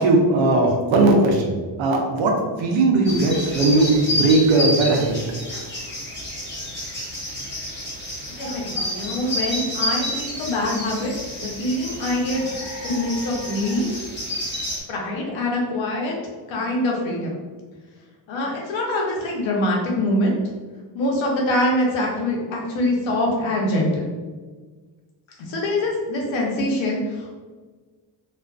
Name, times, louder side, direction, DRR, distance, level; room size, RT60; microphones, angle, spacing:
voice 1, 0.0-5.2, right 2 dB, 80° right, 1 dB, 0.6 m, -18 dB
sound 1, 3.1-14.8, left 1 dB, 25° left, 0.6 m, -29 dB
voice 2, 8.4-11.1 11.4-12.5 12.8-13.9 14.9-16.2 16.5-17.4 18.3-20.3 20.9-24.1 25.4-27.3, left 1 dB, 75° left, -2 dB, 0.8 m, -24 dB
2.4 x 2.4 x 2.3 m, 1.4 s
cardioid pair, 150°, 46 cm